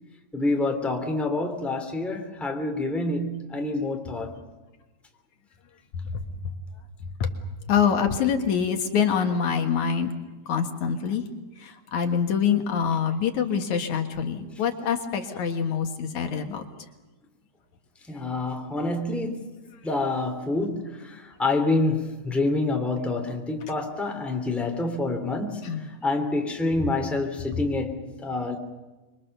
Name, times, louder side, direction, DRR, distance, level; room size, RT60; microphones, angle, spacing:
voice 1, 0.3-4.4 18.1-19.5 19.8-25.6 26.0-28.6, left 2 dB, ahead, 2.5 m, -27 dB
voice 2, 7.7-10.1 10.5-11.2 11.6-16.6 25.6-25.9, left 7 dB, 65° left, 2.8 m, -25 dB
26.0 x 23.5 x 6.8 m
omnidirectional pair, 3.7 m